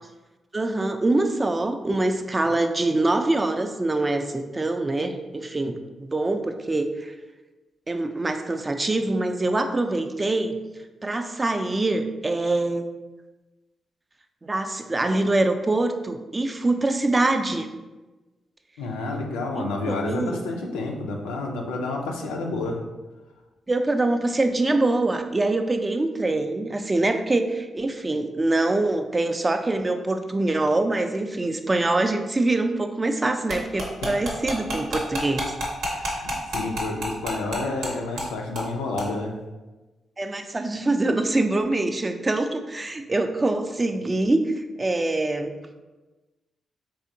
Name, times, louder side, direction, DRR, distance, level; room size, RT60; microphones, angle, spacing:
voice 1, 0.5-7.1 7.9-10.6 11.0-12.9 14.4-17.7 19.6-20.4 23.7-35.5 40.2-45.5, right 2 dB, 30° right, 7 dB, 0.3 m, -24 dB
voice 2, 18.8-22.8 35.9-39.3, left 3 dB, 90° left, 1 dB, 0.4 m, -30 dB
sound 1, 33.5-37.9 38.2-38.3 38.5-38.7 39.0-39.1, equal, 80° right, 0.7 m, -28 dB
3.4 x 2.8 x 2.6 m, 1.2 s
supercardioid pair, 45°, 0 cm